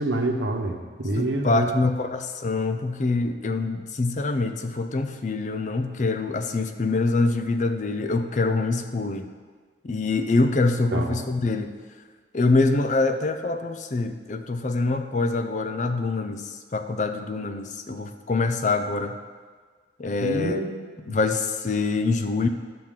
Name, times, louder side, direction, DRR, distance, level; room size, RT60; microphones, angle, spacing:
voice 1, 0.0-1.7 10.9-11.2 20.2-21.2, right 2 dB, 85° right, 3 dB, 1.0 m, -27 dB
voice 2, 1.2-9.3 9.8-11.7 12.3-19.2 20.0-20.6 21.1-22.5, left 3 dB, 40° left, 8 dB, 0.5 m, -25 dB
12.0 x 5.9 x 3.7 m, 1.5 s
head